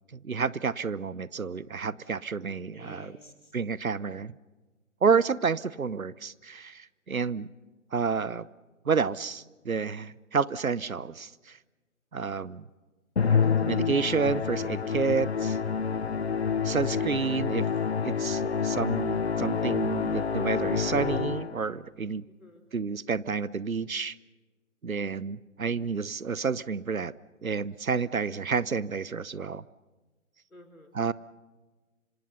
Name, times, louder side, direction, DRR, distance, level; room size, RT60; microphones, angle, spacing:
voice 1, 0.1-3.2 3.5-4.4 5.0-7.5 7.9-8.5 8.9-11.6 12.1-12.6 13.3-15.6 16.6-17.6 18.0-22.2 22.7-24.2 24.8-27.1 27.4-29.6 30.9-31.1, right 5 dB, 85° right, 20 dB, 0.9 m, -30 dB
voice 2, 2.4-3.5 5.4-5.5 15.3-15.5 22.3-22.6 30.5-30.9, left 1 dB, 90° left, 4 dB, 4.8 m, -52 dB
Musical instrument, 13.2-21.7, left 6 dB, 50° left, 0.9 m, -28 dB
26.5 x 26.0 x 5.6 m, 1.3 s
figure-of-eight pair, 150°, 41 cm